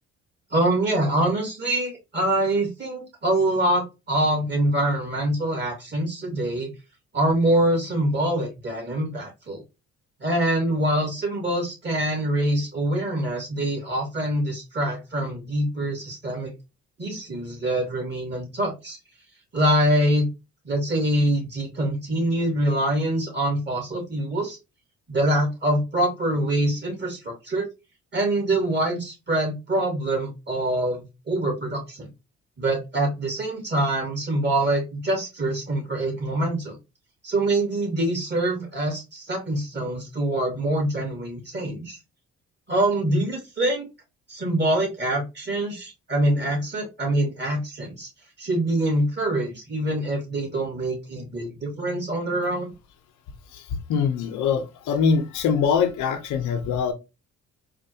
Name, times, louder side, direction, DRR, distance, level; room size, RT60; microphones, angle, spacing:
voice 1, 0.5-6.7 7.1-9.6 10.2-16.5 17.0-19.0 19.5-20.3 20.6-24.6 25.1-27.6 28.1-32.1 32.6-36.8 37.2-42.0 42.7-43.9 44.3-48.1 48.4-52.7, right 1 dB, 35° right, 2.5 m, -25 dB
voice 2, 53.9-56.9, left 6 dB, 90° left, 0.9 m, -23 dB
4.2 x 2.6 x 2.8 m
cardioid pair, 90°, 30 cm